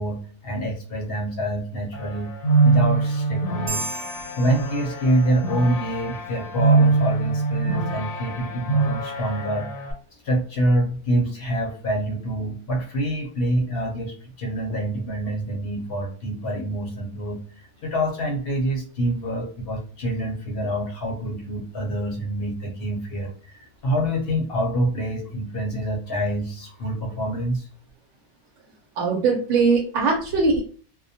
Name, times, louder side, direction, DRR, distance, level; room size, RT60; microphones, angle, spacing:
voice 1, 0.0-2.3 2.6-3.9 4.4-9.7 10.2-27.7, right 1 dB, 60° left, 1 dB, 0.7 m, -26 dB
sound 1, 1.9-9.9, right 3 dB, 90° left, 0.9 m, -23 dB
sound 2, 3.7-5.5, right 3 dB, 40° right, 0.6 m, -35 dB
voice 2, 29.0-30.6, right 4 dB, 90° right, 0 dB, 0.9 m, -20 dB
2.2 x 2.1 x 2.6 m, 0.43 s
omnidirectional pair, 1.2 m